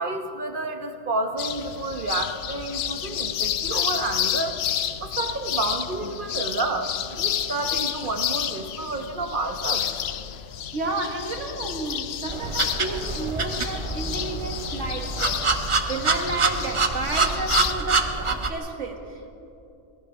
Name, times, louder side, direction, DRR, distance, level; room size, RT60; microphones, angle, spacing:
voice 1, 0.0-4.6 5.0-9.9, right 2 dB, 50° right, 6 dB, 1.1 m, -30 dB
sound 1, 1.4-17.7, left 9 dB, 65° left, 0.8 m, -30 dB
voice 2, 10.7-15.5 15.9-19.3, right 3 dB, 90° right, 4 dB, 1.8 m, -31 dB
sound 2, 12.3-18.5, right 4 dB, 30° right, 0.7 m, -26 dB
20.0 x 14.5 x 5.0 m, 2.7 s
omnidirectional pair, 1.2 m